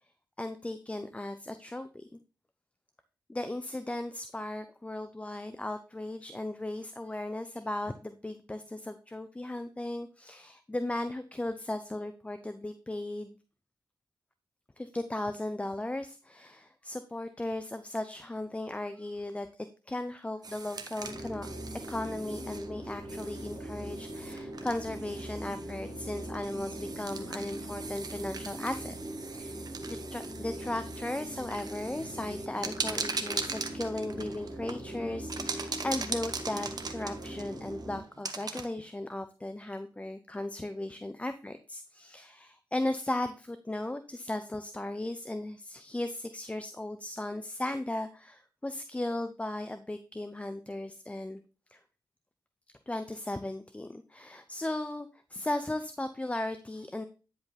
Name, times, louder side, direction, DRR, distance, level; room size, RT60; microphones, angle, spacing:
voice 1, 0.4-2.2 3.3-13.4 14.8-19.5 19.9-21.5 21.9-29.0 29.3-51.4 51.7-51.8 52.9-57.0, left 1 dB, 15° left, 10 dB, 0.6 m, -36 dB
sound 1, 20.4-38.7, right 4 dB, 50° right, 1.0 m, -41 dB
sound 2, 21.0-38.0, right 1 dB, ahead, 1.9 m, -41 dB
10.0 x 4.8 x 3.4 m, 0.35 s
cardioid pair, 70°, 8 cm